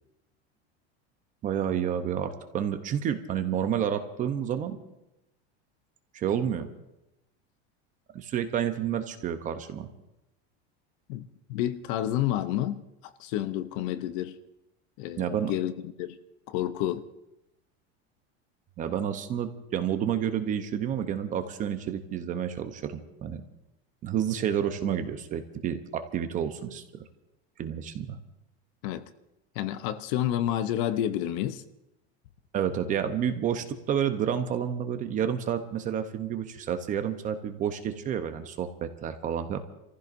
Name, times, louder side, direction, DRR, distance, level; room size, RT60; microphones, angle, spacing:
voice 1, 1.4-4.8 6.1-6.7 8.1-9.9 15.2-15.5 18.8-23.4 24.0-27.0 27.6-28.2 32.5-39.6, right 9 dB, 25° right, 9 dB, 0.7 m, -30 dB
voice 2, 11.1-14.4 15.0-16.2 16.5-17.1 28.8-29.1 29.5-31.6, left 12 dB, 50° left, 12 dB, 0.7 m, -30 dB
29.5 x 15.0 x 2.6 m, 0.89 s
supercardioid pair, 170°, 32 cm